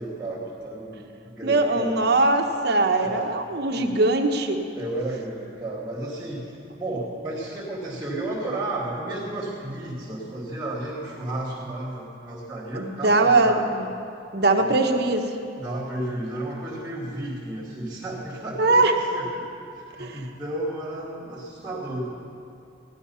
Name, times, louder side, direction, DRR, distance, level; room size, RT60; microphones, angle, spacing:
voice 1, 0.0-2.2 3.0-3.3 3.7-3.9 4.7-6.5 6.8-13.7 14.6-14.8 15.6-18.8 19.1-19.4 19.7-22.1, right 1 dB, 10° right, -7 dB, 2.3 m, -33 dB
voice 2, 1.4-4.6 12.7-13.9 14.3-15.3 18.6-18.9 20.0-20.2, right 2 dB, 55° right, 4 dB, 1.1 m, -21 dB
16.5 x 12.0 x 5.6 m, 2.6 s
head